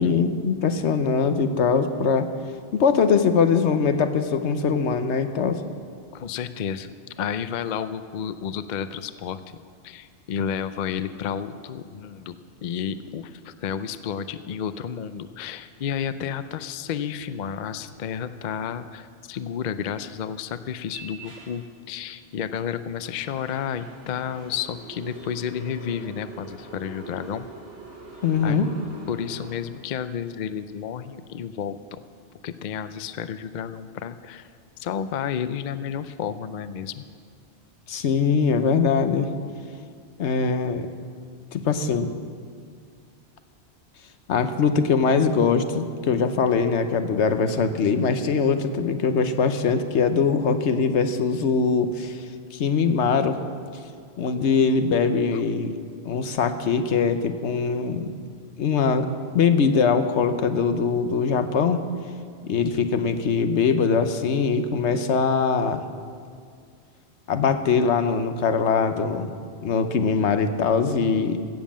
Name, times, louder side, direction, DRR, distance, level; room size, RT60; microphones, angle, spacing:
voice 1, 0.0-2.3 2.7-5.6 28.2-28.7 37.9-39.3 40.2-40.9 41.5-42.1 44.3-52.2 52.5-53.4 54.2-55.7 56.0-58.1 58.6-59.1 59.3-61.8 62.5-65.8 67.3-69.3 69.6-71.4, left 5 dB, 80° left, 9 dB, 1.1 m, -22 dB
voice 2, 6.1-6.9 7.2-9.4 9.8-27.5 28.4-28.6 29.1-32.0 32.4-34.5 34.8-37.0 55.3-55.4, left 8 dB, 55° left, 12 dB, 0.5 m, -31 dB
sound 1, 20.9-21.5 22.1-22.2 22.9-29.6, right 3 dB, 80° right, 3.4 m, -43 dB
16.0 x 7.4 x 7.3 m, 2.2 s
omnidirectional pair, 1.2 m